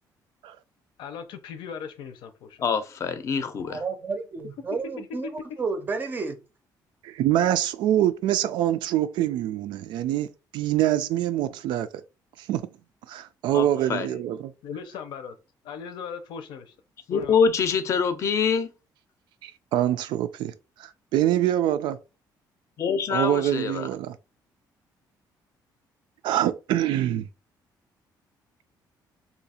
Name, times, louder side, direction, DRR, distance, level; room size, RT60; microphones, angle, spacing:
voice 1, 1.0-2.6 14.6-15.4 15.6-16.7 17.1-17.4, left 7 dB, 90° left, 0.6 m, -38 dB
voice 2, 2.6-3.8 13.5-14.1 17.1-18.7 22.8-23.9, left 6 dB, 40° left, 0.5 m, -25 dB
voice 3, 3.7-5.3 5.6-6.4, right 4 dB, 25° right, 0.5 m, -31 dB
voice 4, 7.0-11.9 12.4-12.7 13.1-14.5 19.4-20.5 20.8-22.0 23.1-24.2 26.2-27.3, right 12 dB, 90° right, 0.4 m, -25 dB
2.8 x 2.4 x 4.1 m
cardioid pair, 175°, 8 cm